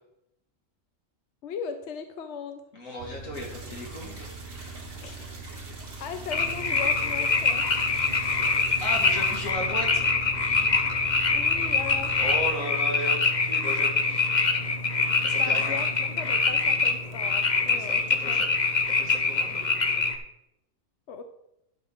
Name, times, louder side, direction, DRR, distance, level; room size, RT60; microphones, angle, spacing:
voice 1, 1.4-2.6 5.0-5.7 6.0-7.6 11.3-12.1 15.3-18.4 21.1-21.2, left 6 dB, 60° left, 8 dB, 1.0 m, -38 dB
voice 2, 2.7-4.3 8.8-10.1 12.2-14.4 15.2-15.8 17.7-17.9 18.2-18.5 18.9-19.6, left 1 dB, 80° left, -1 dB, 2.7 m, -35 dB
sound 1, 3.0-12.5, right 3 dB, 50° right, 1.1 m, -42 dB
sound 2, 3.3-9.5, right 2 dB, 80° right, 2.7 m, -47 dB
sound 3, 6.3-20.2, left 4 dB, 35° left, 1.0 m, -24 dB
11.5 x 4.1 x 7.0 m, 0.81 s
omnidirectional pair, 1.4 m